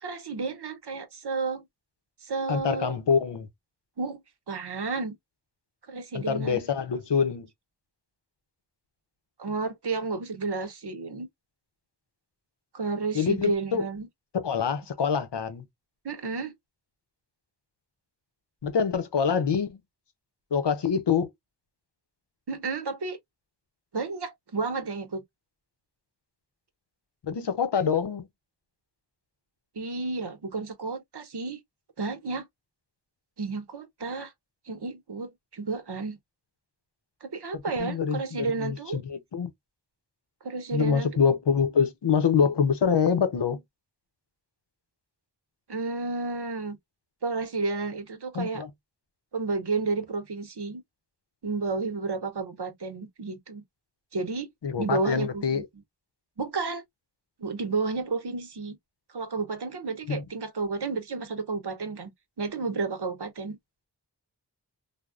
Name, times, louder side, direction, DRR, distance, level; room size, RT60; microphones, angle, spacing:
voice 1, 0.0-1.6 2.2-3.0 4.0-4.2 4.5-5.2 5.9-6.6 9.4-11.3 12.7-14.1 16.0-16.5 22.5-23.2 23.9-25.2 29.8-31.6 32.0-32.5 33.4-34.3 34.7-36.2 37.2-39.0 40.4-41.2 45.7-46.8 47.2-48.6 49.3-50.8 51.4-53.6 54.1-54.5 54.8-55.6 56.4-56.8 57.4-58.8 59.1-63.6, right 4 dB, 75° right, 0.9 m, -31 dB
voice 2, 2.5-3.5 6.1-7.5 13.1-13.8 14.3-15.6 18.6-19.8 20.5-21.3 27.2-28.3 37.5-39.5 40.7-43.6 48.3-48.7 54.6-55.6 60.0-60.2, left 6 dB, 85° left, 0.7 m, -25 dB
3.4 x 2.1 x 2.4 m
wide cardioid pair, 55°, 41 cm